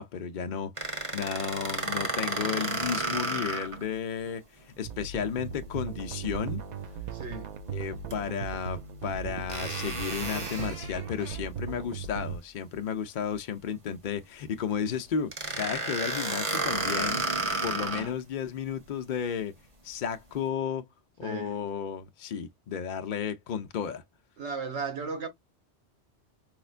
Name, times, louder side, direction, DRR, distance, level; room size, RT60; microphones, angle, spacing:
voice 1, 0.0-4.4 4.8-6.6 7.7-17.2 17.6-19.5 19.8-20.8 21.2-24.0, left 7 dB, 50° left, 0.7 m, -33 dB
sound 1, 0.8-3.8 4.3-4.4 8.1-8.2 9.5-11.4 15.3-18.1, right 2 dB, 30° right, 0.9 m, -32 dB
sound 2, 4.8-12.4, right 7 dB, 55° right, 0.5 m, -38 dB
voice 2, 7.1-7.5 21.2-21.6 24.4-25.3, right 4 dB, 85° right, 1.4 m, -36 dB
4.9 x 2.1 x 2.4 m
omnidirectional pair, 1.1 m